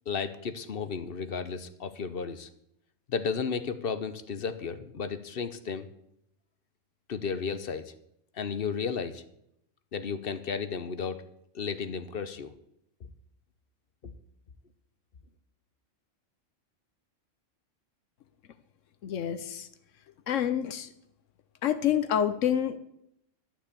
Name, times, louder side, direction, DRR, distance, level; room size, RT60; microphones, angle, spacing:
voice 1, 0.1-2.5 3.1-5.9 7.1-7.9 8.3-9.2 9.9-11.2 11.5-12.5 14.0-14.1, left 6 dB, 50° left, 11 dB, 0.9 m, -33 dB
voice 2, 19.0-19.7 20.3-20.9 21.6-22.8, left 9 dB, 75° left, 12 dB, 1.0 m, -27 dB
12.0 x 6.0 x 8.3 m, 0.77 s
omnidirectional pair, 1.3 m